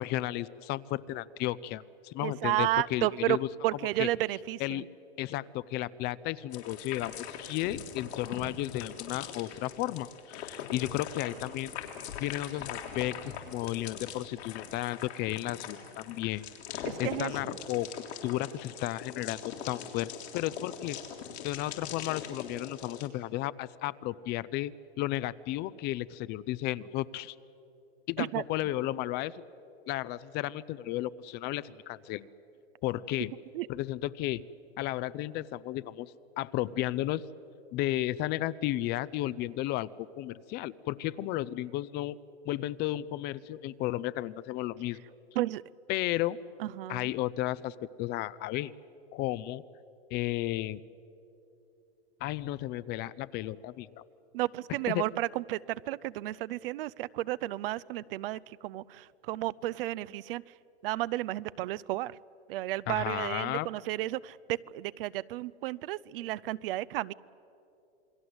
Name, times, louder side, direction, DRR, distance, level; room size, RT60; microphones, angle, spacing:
voice 1, 0.0-3.5 4.0-4.1 4.6-4.8 5.2-11.7 12.2-16.4 16.7-17.9 18.2-21.0 21.4-27.4 28.1-29.4 29.9-32.2 32.8-33.3 33.7-34.4 34.8-37.2 37.7-42.2 42.5-45.0 45.9-46.4 46.9-48.7 49.1-49.6 50.1-50.8 52.2-54.0 54.9-55.0 62.9-63.7, left 15 dB, 30° left, 18 dB, 0.5 m, -33 dB
voice 2, 2.2-3.4 3.6-4.9 16.8-17.3 28.2-28.4 33.5-33.7 45.4-45.6 46.6-47.1 54.3-60.4 60.8-62.1 62.5-67.1, right 16 dB, 60° right, 19 dB, 0.6 m, -32 dB
sound 1, 6.5-23.1, left 8 dB, 80° left, 3.5 m, -42 dB
28.0 x 21.0 x 8.0 m, 2.9 s
hypercardioid pair, 130°, 32 cm